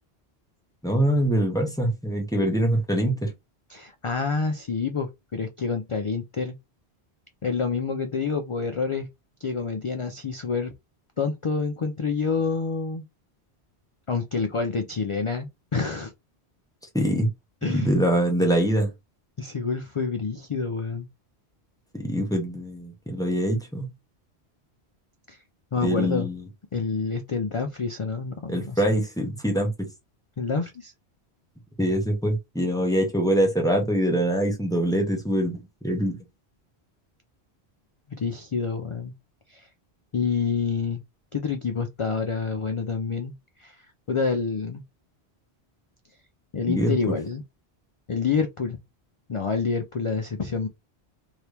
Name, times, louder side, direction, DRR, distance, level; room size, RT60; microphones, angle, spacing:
voice 1, 0.8-3.3 16.9-17.3 17.7-18.9 21.9-23.9 25.8-26.4 28.5-29.9 31.8-36.2 46.7-46.9, right 1 dB, 5° left, 0.9 m, -24 dB
voice 2, 3.7-6.5 7.4-9.1 9.4-10.7 11.2-13.0 14.1-16.1 17.6-18.0 19.4-21.1 25.3-25.4 25.7-26.3 26.7-28.8 30.4-30.9 38.1-39.1 39.5-39.7 40.1-41.0 41.3-44.8 46.5-47.4 48.1-48.8 49.3-50.7, left 5 dB, 55° left, 0.3 m, -28 dB
2.9 x 2.7 x 3.3 m
omnidirectional pair, 1.1 m